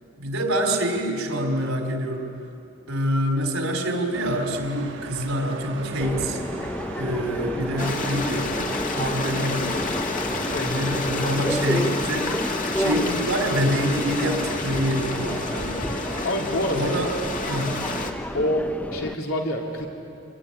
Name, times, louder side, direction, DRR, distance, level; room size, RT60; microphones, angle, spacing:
voice 1, 0.2-2.3 2.9-6.4 6.9-8.5 9.0-9.7 10.3-12.3 12.8-15.7 16.7-17.1 17.4-17.8, equal, 90° right, 4 dB, 3.8 m, -26 dB
sound 1, 4.1-18.1, right 3 dB, 60° right, 1.3 m, -39 dB
Subway metro underground, 6.0-19.1, equal, 5° left, 0.5 m, -31 dB
Stream, 7.8-18.1, left 3 dB, 40° left, 2.1 m, -30 dB
voice 2, 10.4-10.8 11.1-11.4 15.8-16.9 18.3-19.9, left 1 dB, 85° left, 0 dB, 3.7 m, -27 dB
26.5 x 22.0 x 9.9 m, 2.8 s
head